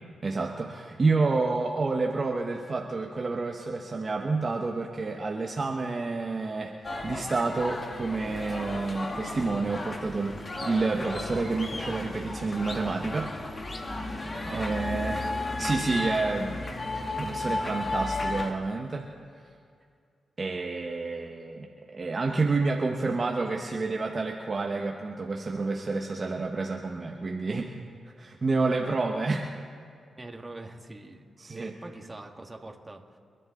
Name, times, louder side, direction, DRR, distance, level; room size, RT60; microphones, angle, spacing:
voice 1, 0.2-13.3 14.1-15.3 15.6-16.6 17.2-19.1 20.4-27.8 28.2-29.5 31.4-31.7, right 3 dB, 45° right, 1 dB, 1.3 m, -29 dB
sound 1, 6.8-18.5, left 2 dB, 40° left, 1.8 m, -34 dB
voice 2, 14.5-14.9 30.1-33.2, right 2 dB, 25° right, 3 dB, 2.1 m, -43 dB
29.0 x 10.5 x 4.0 m, 2.3 s
cardioid pair, 55°, 0 cm